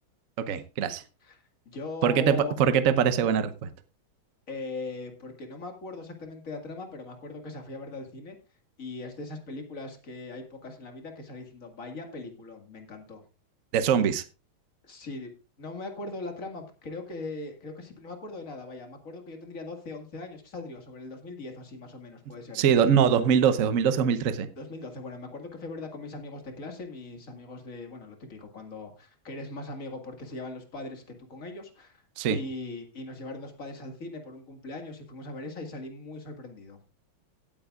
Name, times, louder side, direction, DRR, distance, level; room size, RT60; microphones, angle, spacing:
voice 1, 0.5-1.0 2.0-3.7 13.7-14.2 22.5-24.5 32.2-32.4, right 8 dB, 55° right, 11 dB, 0.9 m, -23 dB
voice 2, 1.7-2.6 4.5-8.4 8.8-13.2 14.8-15.3 15.6-22.7 24.6-31.0 31.3-32.0 32.3-36.8, left 3 dB, 40° left, 4 dB, 2.2 m, -40 dB
17.5 x 8.8 x 2.4 m, 0.31 s
omnidirectional pair, 2.3 m